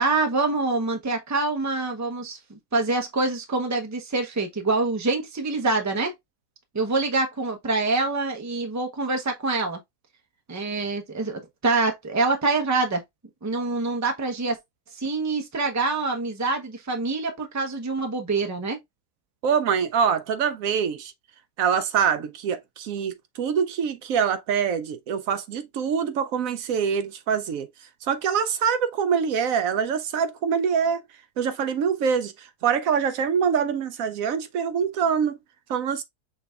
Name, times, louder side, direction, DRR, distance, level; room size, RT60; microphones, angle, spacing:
voice 1, 0.0-6.1 6.7-9.8 10.5-13.0 13.4-14.6 14.9-18.8, right 3 dB, 20° right, 0.5 m, -25 dB
voice 2, 19.4-21.1 21.6-27.7 28.1-31.0 31.4-32.3 32.6-35.4 35.7-36.0, right 7 dB, 70° right, 0.9 m, -24 dB
6.0 x 3.3 x 2.3 m
omnidirectional pair, 1.7 m